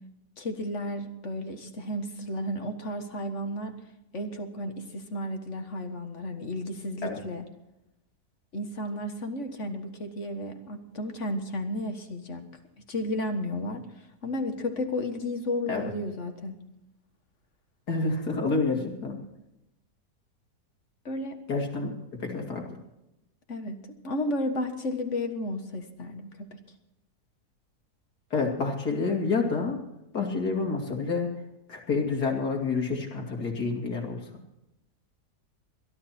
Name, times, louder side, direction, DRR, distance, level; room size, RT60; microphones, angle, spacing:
voice 1, 0.4-3.8 4.1-7.5 8.5-12.4 12.9-13.9 14.2-16.6 21.1-21.4 23.5-26.5, left 1 dB, 50° left, 6 dB, 1.8 m, -33 dB
voice 2, 17.9-19.2 21.5-21.9 22.2-22.8 28.3-29.8 30.1-31.3 31.7-34.2, left 4 dB, 80° left, 1 dB, 3.1 m, -28 dB
22.0 x 12.0 x 4.4 m, 0.90 s
omnidirectional pair, 1.7 m